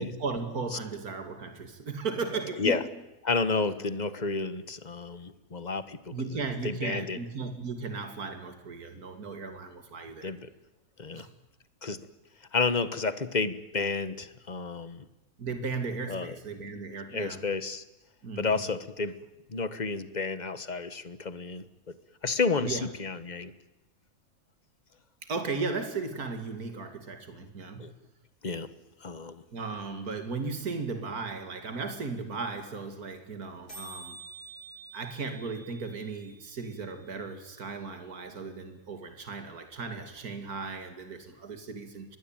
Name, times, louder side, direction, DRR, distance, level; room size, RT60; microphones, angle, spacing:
voice 1, 0.0-2.8 6.1-10.3 11.1-11.3 15.4-17.4 18.2-18.5 22.6-22.9 25.2-27.9 29.5-34.2 34.9-42.2, right 4 dB, 75° right, 2.9 m, -36 dB
voice 2, 3.2-7.2 10.2-10.5 11.0-11.3 11.8-12.0 12.5-15.1 16.1-16.3 17.1-17.8 18.4-19.2 19.5-21.7 22.2-23.5 27.8-27.9 28.4-28.7 29.0-29.4, left 4 dB, 30° left, 1.4 m, -31 dB
sound 1, 31.6-31.7 31.9-32.0 32.1-32.4 32.6-32.7 32.9-33.2 33.4-33.5 33.7-37.7, right 3 dB, 90° left, 8.5 m, -49 dB
24.5 x 20.5 x 9.0 m
omnidirectional pair, 1.6 m